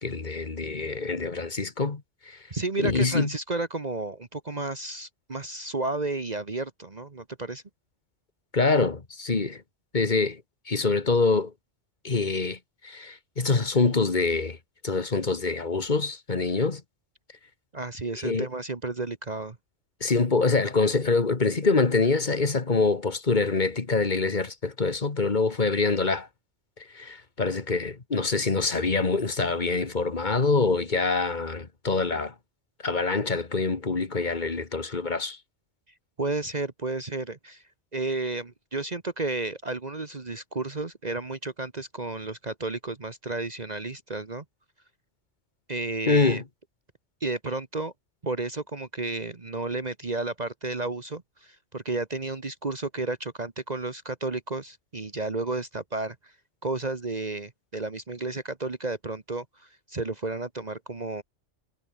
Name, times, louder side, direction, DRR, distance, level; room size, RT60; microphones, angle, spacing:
voice 1, 0.0-2.4 2.8-3.3 8.5-9.6 9.9-10.4 10.7-11.5 12.0-12.6 12.8-14.6 14.8-16.8 18.2-18.5 20.0-26.3 26.9-32.3 32.8-35.4 46.1-46.4, left 3 dB, 40° left, 1.8 m, -25 dB
voice 2, 2.5-7.6 17.7-19.6 36.2-37.6 37.9-44.4 45.7-46.4 47.2-47.9 48.2-56.3 56.6-61.2, right 3 dB, 35° right, 1.4 m, -32 dB
omnidirectional pair, 1.2 m